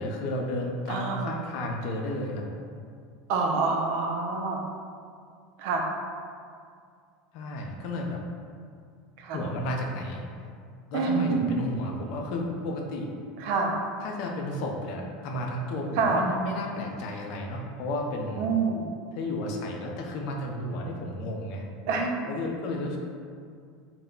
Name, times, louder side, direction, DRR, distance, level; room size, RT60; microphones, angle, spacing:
voice 1, 0.0-2.5 7.3-8.2 9.3-10.2 10.9-13.1 14.0-18.5 19.2-21.7 22.2-23.0, left 1 dB, 60° left, 1 dB, 0.4 m, -32 dB
voice 2, 0.9-1.3 3.3-4.6 5.6-5.9 9.2-9.4 10.9-11.6 13.4-13.8 16.0-16.2 18.4-18.9 21.9-22.3, right 4 dB, 65° right, 2 dB, 0.4 m, -26 dB
2.1 x 2.0 x 3.7 m, 2.2 s
supercardioid pair, 110°, 0 cm